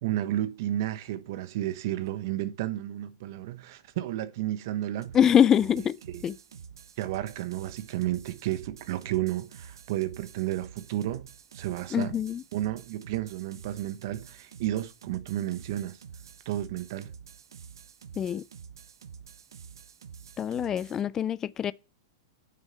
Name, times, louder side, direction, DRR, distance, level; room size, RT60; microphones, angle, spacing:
voice 1, 0.0-5.2 6.1-6.3 7.0-11.3 11.5-12.1 12.5-16.0 16.4-17.1, right 13 dB, 60° right, 1.0 m, -32 dB
sound 1, 5.0-21.0, right 7 dB, 85° right, 0.7 m, -48 dB
voice 2, 5.1-6.0 6.2-6.3 11.9-12.4 18.2-18.4 20.4-21.7, left 9 dB, 20° left, 0.4 m, -24 dB
9.1 x 6.8 x 5.7 m
hypercardioid pair, 125°, 2 cm